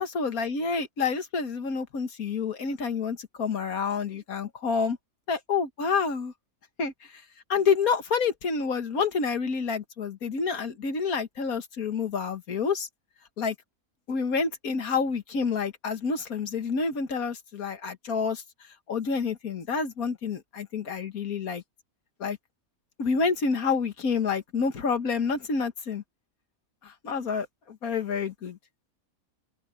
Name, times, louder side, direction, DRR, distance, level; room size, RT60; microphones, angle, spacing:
voice 1, 0.0-5.0 5.3-6.3 6.8-7.2 7.5-12.9 13.4-13.6 14.1-18.4 18.9-21.6 22.2-22.4 23.0-26.0 26.8-28.6, left 5 dB, 85° left, 2.0 m, -28 dB
open air
omnidirectional pair, 1.5 m